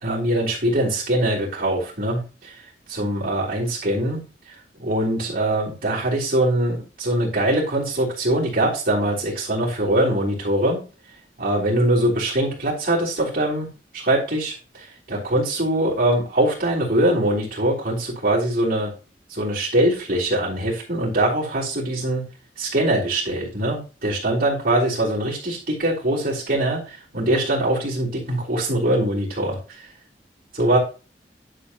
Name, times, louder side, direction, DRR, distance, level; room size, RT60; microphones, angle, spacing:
voice 1, 0.0-10.8 11.4-13.7 13.9-18.9 19.3-22.3 22.6-29.9 30.5-30.8, right 1 dB, 55° right, -8 dB, 3.5 m, -22 dB
10.5 x 7.6 x 3.0 m, 0.34 s
head